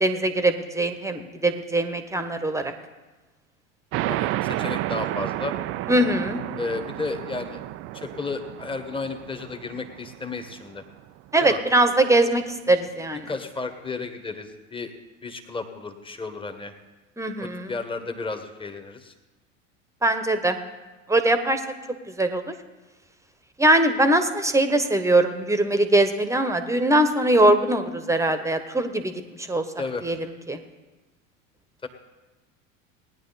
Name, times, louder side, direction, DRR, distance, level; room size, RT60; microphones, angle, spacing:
voice 1, 0.0-2.7 5.9-6.4 11.3-13.3 17.2-17.7 20.0-20.6 21.1-21.6 22.2-22.5 23.6-29.1 29.4-29.6 30.0-30.2 30.5-30.6, right 1 dB, 5° right, 8 dB, 1.2 m, -21 dB
sound 1, 3.9-11.1, right 16 dB, 35° right, 0.4 m, -31 dB
voice 2, 4.1-5.5 6.6-7.6 7.9-10.8 11.4-11.6 13.3-14.9 15.2-16.7 17.4-19.1 29.8-30.0 31.8-31.9, left 3 dB, 15° left, 7 dB, 1.5 m, -33 dB
18.5 x 10.0 x 4.1 m, 1.2 s
figure-of-eight pair, 80°, 39 cm